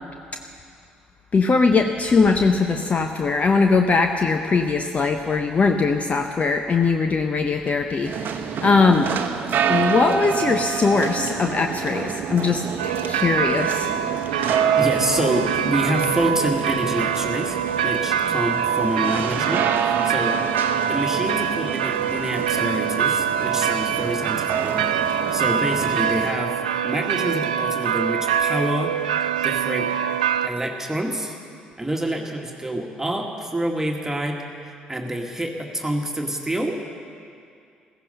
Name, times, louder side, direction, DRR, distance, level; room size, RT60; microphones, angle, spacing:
voice 1, 1.3-9.1 9.7-13.9, left 4 dB, 35° left, 5 dB, 0.8 m, -20 dB
sound 1, 8.0-26.3, right 7 dB, 50° right, 0.9 m, -28 dB
sound 2, 12.8-30.5, right 8 dB, 80° right, 0.4 m, -24 dB
voice 2, 14.4-20.4 20.6-26.5 26.8-28.9 29.4-29.9 30.4-31.3 31.8-34.4 34.6-36.7, right 1 dB, 10° right, 1 dB, 1.9 m, -27 dB
15.5 x 15.0 x 5.6 m, 2.4 s
figure-of-eight pair, 50°, 4 cm